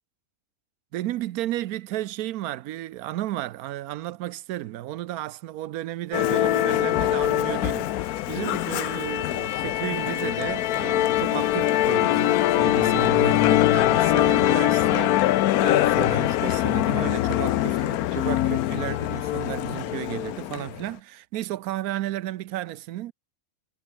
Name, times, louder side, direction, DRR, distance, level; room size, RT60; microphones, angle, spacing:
voice 1, 0.9-23.1, right 14 dB, 90° right, 1.1 m, -33 dB
Musical instrument, 6.1-20.8, left 14 dB, 90° left, 1.1 m, -23 dB
omnidirectional pair, 1.5 m